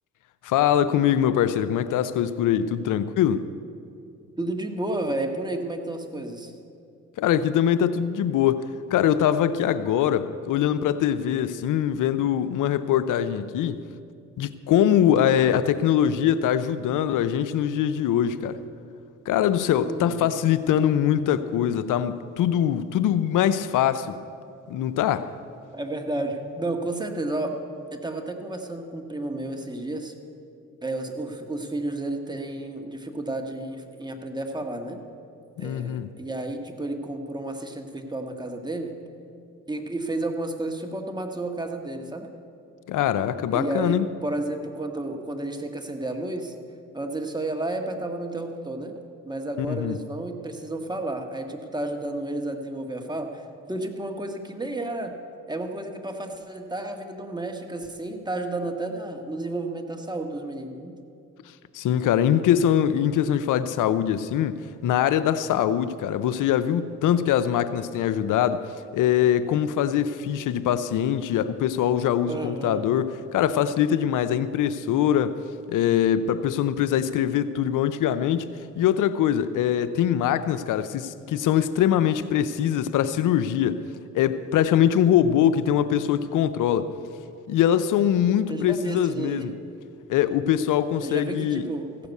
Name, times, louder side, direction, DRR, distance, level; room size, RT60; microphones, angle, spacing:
voice 1, 0.4-3.5 7.2-13.8 14.4-18.6 19.3-24.2 24.7-25.3 35.6-36.1 42.9-44.1 49.7-50.0 61.7-68.7 68.9-75.4 75.7-78.5 78.8-83.8 84.1-86.9 87.5-89.5 90.1-91.6, left 10 dB, 75° left, 13 dB, 0.6 m, -23 dB
voice 2, 4.4-6.5 19.8-20.3 25.7-27.6 27.9-30.1 30.8-35.0 35.6-38.9 39.7-42.3 43.5-46.5 46.9-48.9 49.2-55.2 55.5-60.9 72.2-72.9 88.5-89.5 91.0-91.9, right 2 dB, 15° right, 3 dB, 1.6 m, -31 dB
15.0 x 6.8 x 8.2 m, 2.5 s
supercardioid pair, 65°, 32 cm